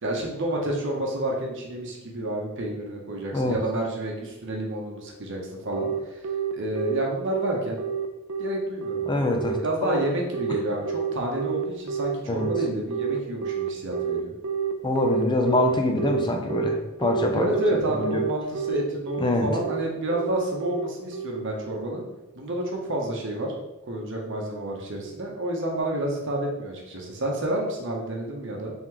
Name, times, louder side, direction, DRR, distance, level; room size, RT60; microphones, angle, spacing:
voice 1, 0.0-6.2 6.5-7.8 8.4-9.2 9.6-14.3 17.3-22.0 22.3-23.5 23.9-28.7, right 1 dB, 60° right, 0 dB, 0.9 m, -29 dB
Telephone, 5.7-21.9, right 7 dB, 80° right, 0.4 m, -29 dB
voice 2, 9.1-10.0 12.3-12.5 14.8-17.5 17.8-18.2 19.2-19.5, left 2 dB, 20° left, 3 dB, 0.5 m, -25 dB
3.6 x 3.0 x 3.7 m, 1.0 s
head